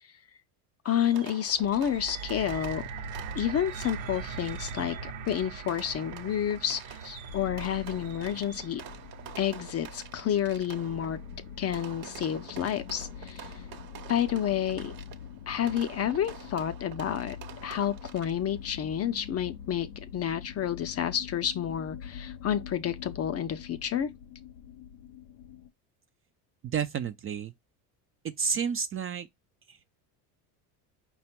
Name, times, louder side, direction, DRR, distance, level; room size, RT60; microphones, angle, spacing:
voice 1, 0.8-2.8 3.3-8.8 9.4-11.2 11.6-13.5 14.1-14.9 15.5-17.4 17.6-24.1, left 9 dB, 30° left, 0.5 m, -30 dB
Fireworks, 0.9-18.6, right 9 dB, 45° right, 0.9 m, -47 dB
sound 1, 1.5-11.7 12.5-12.6, right 5 dB, 70° right, 0.9 m, -42 dB
sound 2, 7.3-25.7, left 8 dB, 90° left, 0.6 m, -45 dB
voice 2, 26.6-27.5 28.4-29.3 29.7-29.8, right 6 dB, 30° right, 0.4 m, -31 dB
4.9 x 2.3 x 4.2 m
supercardioid pair, 85°, 48 cm